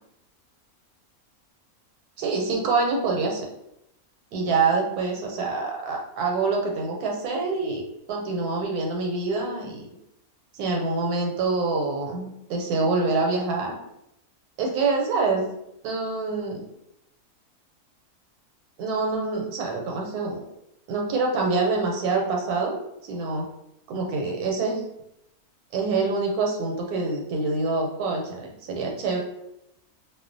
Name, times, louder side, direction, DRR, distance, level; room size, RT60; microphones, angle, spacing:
voice 1, 2.2-3.4 4.3-9.8 10.5-13.7 14.6-15.5 15.8-16.7 18.8-20.4 20.9-22.7 23.0-23.5 23.9-24.8 25.7-29.2, right 3 dB, 85° right, 1 dB, 1.1 m, -26 dB
2.4 x 2.1 x 2.5 m, 0.81 s
omnidirectional pair, 1.6 m